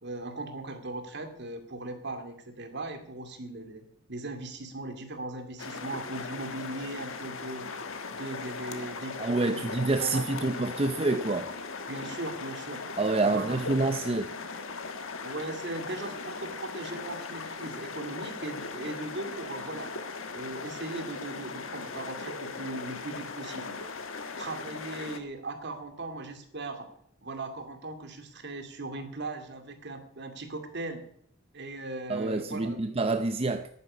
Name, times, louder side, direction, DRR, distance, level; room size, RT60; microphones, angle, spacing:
voice 1, 0.0-7.7 8.1-10.5 11.9-12.8 13.2-13.6 15.2-19.9 20.3-23.8 24.4-26.9 27.2-31.0 31.5-33.0, right 2 dB, 55° right, 2.3 m, -38 dB
sound 1, 5.6-25.2, left 4 dB, 80° left, 1.5 m, -39 dB
voice 2, 9.2-11.5 13.0-14.3 32.1-33.7, right 2 dB, 30° right, 0.6 m, -27 dB
11.0 x 9.5 x 9.7 m
head